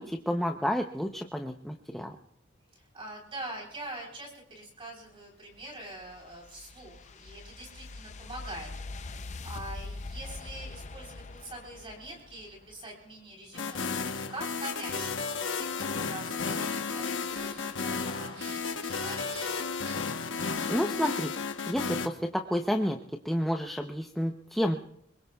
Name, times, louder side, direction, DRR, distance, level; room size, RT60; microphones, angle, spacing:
voice 1, 0.0-2.2 20.7-21.3 21.7-23.0 23.2-24.8, equal, ahead, 2 dB, 0.7 m, -30 dB
voice 2, 2.7-19.6, right 1 dB, 30° right, -1 dB, 3.8 m, -44 dB
sound 1, 5.5-12.8, left 3 dB, 40° left, 0.5 m, -43 dB
sound 2, 13.5-22.1, left 5 dB, 85° left, 1.0 m, -33 dB
sound 3, 16.4-21.3, right 4 dB, 80° right, 4.4 m, -52 dB
25.0 x 22.5 x 2.3 m, 0.72 s
head